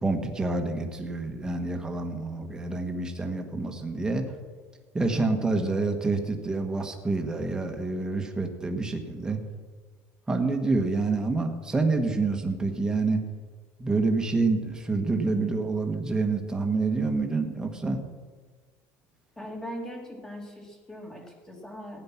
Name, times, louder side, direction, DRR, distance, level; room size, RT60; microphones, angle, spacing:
voice 1, 0.0-4.2 4.9-9.4 10.3-13.2 13.8-18.0, right 3 dB, 10° right, 4 dB, 1.4 m, -27 dB
voice 2, 19.4-22.0, equal, 10° left, 2 dB, 2.1 m, -40 dB
16.0 x 9.9 x 5.9 m, 1.5 s
cardioid pair, 150°, 6 cm